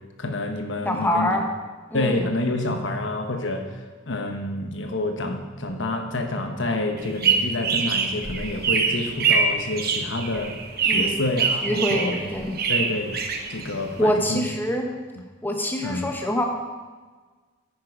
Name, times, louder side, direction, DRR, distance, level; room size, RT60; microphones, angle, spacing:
voice 1, 0.2-1.4 1.9-3.6 4.1-10.5 10.9-12.2 12.7-13.1 13.5-14.5 15.8-16.1, left 2 dB, 65° left, 5 dB, 1.2 m, -28 dB
voice 2, 0.8-1.4 1.9-2.3 10.8-11.2 11.6-12.6 14.0-14.9 15.4-16.4, equal, 10° left, 2 dB, 1.1 m, -25 dB
sound 1, 7.0-14.0, right 5 dB, 50° right, 1.1 m, -24 dB
9.8 x 9.3 x 4.8 m, 1.4 s
head